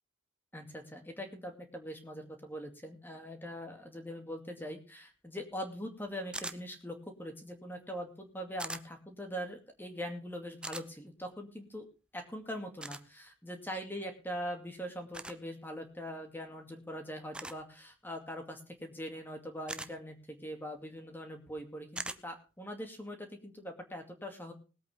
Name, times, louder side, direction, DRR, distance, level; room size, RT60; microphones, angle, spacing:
voice 1, 0.5-11.8 12.1-24.5, equal, 10° left, 4 dB, 2.3 m, -42 dB
sound 1, 6.3-6.6 8.6-8.8 10.6-10.9 12.8-13.0 15.1-15.4 17.3-17.6 19.7-19.9 22.0-22.2, right 2 dB, 5° right, 0.6 m, -40 dB
20.5 x 8.2 x 3.7 m, 0.34 s
head